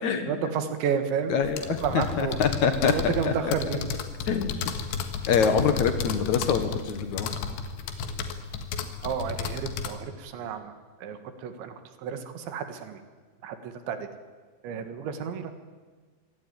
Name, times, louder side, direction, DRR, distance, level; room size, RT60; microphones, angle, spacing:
voice 1, 0.3-1.4 1.6-2.4 2.9-3.9 9.0-10.7 11.0-13.0 13.4-14.1 14.6-15.5, right 7 dB, 75° right, 8 dB, 4.0 m, -31 dB
voice 2, 1.3-1.8 2.2-3.5 4.3-4.6 5.3-7.5, left 6 dB, 60° left, 8 dB, 2.1 m, -25 dB
sound 1, 1.4-9.9, left 6 dB, 85° left, 4.0 m, -33 dB
25.5 x 17.5 x 9.6 m, 1.4 s
omnidirectional pair, 5.3 m